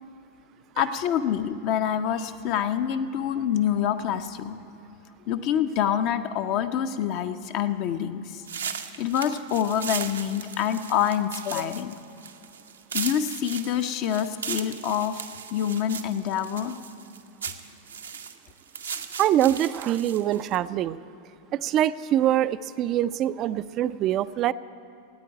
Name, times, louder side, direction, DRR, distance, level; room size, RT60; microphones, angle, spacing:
voice 1, 0.8-4.6 5.3-8.4 9.0-11.9 12.9-15.2 15.5-16.8, left 9 dB, 45° left, 8 dB, 0.6 m, -26 dB
sound 1, 8.4-20.6, right 7 dB, 70° right, 0.7 m, -37 dB
voice 2, 19.2-21.0 21.5-24.5, right 12 dB, 35° right, 17 dB, 0.4 m, -24 dB
14.5 x 9.1 x 8.8 m, 2.8 s
figure-of-eight pair, 90°, 0 cm